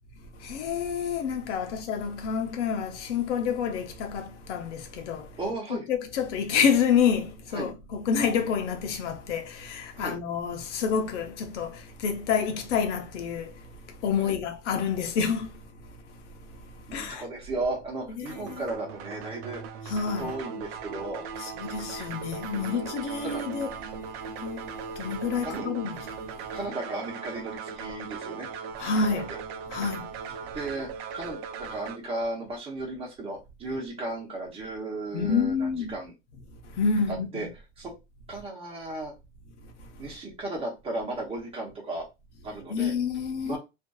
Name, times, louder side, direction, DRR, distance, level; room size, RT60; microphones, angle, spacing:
voice 1, 0.3-5.4 5.9-17.2 18.2-18.6 19.9-20.3 21.4-23.7 24.2-26.5 28.8-29.3 29.7-30.1 30.4-30.5 35.1-35.9 36.6-37.5 39.6-39.9 42.7-43.6, left 6 dB, 85° left, 0.7 m, -29 dB
voice 2, 5.4-5.9 6.5-6.6 7.5-7.7 8.2-8.4 9.9-10.2 14.2-14.4 16.9-19.6 20.2-21.2 22.5-22.9 23.2-23.4 25.4-25.7 26.5-28.5 29.1-29.4 29.8-30.0 30.5-36.1 37.1-37.5 37.8-37.9 38.3-39.1 40.0-42.0 42.4-42.9 43.4-43.6, right 2 dB, 15° right, 0.8 m, -35 dB
sound 1, 18.3-32.0, right 6 dB, 60° right, 0.5 m, -39 dB
2.5 x 2.3 x 2.3 m
supercardioid pair, 140°, 34 cm